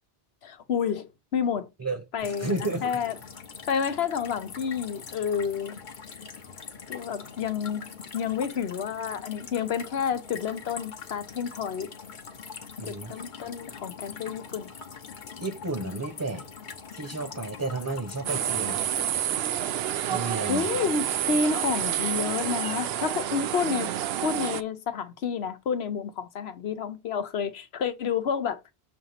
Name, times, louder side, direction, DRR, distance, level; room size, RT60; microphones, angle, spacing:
voice 1, 0.4-1.7 2.1-3.1 3.7-5.8 6.9-7.9 8.1-11.9 12.8-14.7 20.5-23.9 24.2-28.7, left 6 dB, 80° left, 1.1 m, -29 dB
voice 2, 1.8-2.9 12.8-13.1 15.4-16.4 16.9-18.8 20.1-20.7, right 2 dB, 20° right, 1.0 m, -32 dB
sound 1, 2.2-19.1, left 6 dB, 50° left, 1.0 m, -43 dB
sound 2, 18.3-24.6, right 11 dB, 75° right, 0.8 m, -29 dB
7.1 x 2.9 x 5.7 m
omnidirectional pair, 1.0 m